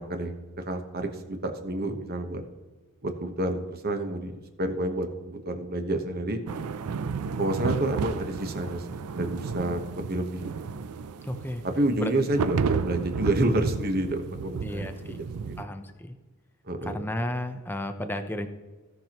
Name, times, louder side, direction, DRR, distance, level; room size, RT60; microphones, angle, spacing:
voice 1, 0.7-2.4 3.0-6.4 7.4-8.8 9.1-10.5 11.6-15.6 16.6-17.1, right 1 dB, 45° right, 6 dB, 1.0 m, -29 dB
sound 1, 6.5-15.6, right 5 dB, 85° right, 0.4 m, -32 dB
voice 2, 11.2-11.6 12.0-12.1 14.6-15.2 15.6-16.1 16.8-18.5, left 1 dB, 10° left, 7 dB, 0.6 m, -33 dB
17.0 x 6.0 x 2.9 m, 1.3 s
head